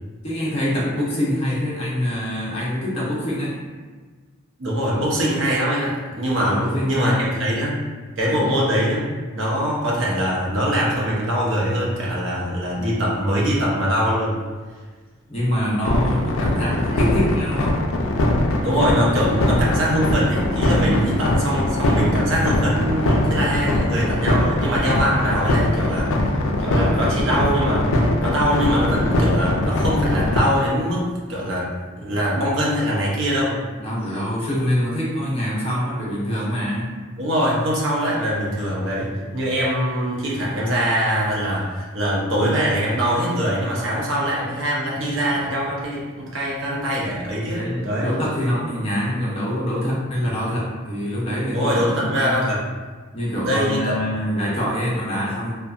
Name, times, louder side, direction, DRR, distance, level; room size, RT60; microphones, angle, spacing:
voice 1, 0.2-3.6 4.9-5.0 6.4-7.4 8.3-8.4 15.3-17.8 20.7-21.1 33.8-37.0 39.2-39.5 47.5-52.3 53.1-55.5, equal, 30° left, -5 dB, 0.6 m, -25 dB
voice 2, 4.6-7.8 8.2-9.1 9.3-14.4 16.9-17.0 18.6-27.9 28.2-31.7 32.0-33.6 37.2-48.1 51.5-52.6 53.4-53.9, equal, 60° right, -5 dB, 0.7 m, -22 dB
sound 1, 15.9-30.4, left 1 dB, 65° left, 0.4 m, -21 dB
2.7 x 2.2 x 2.3 m, 1.4 s
head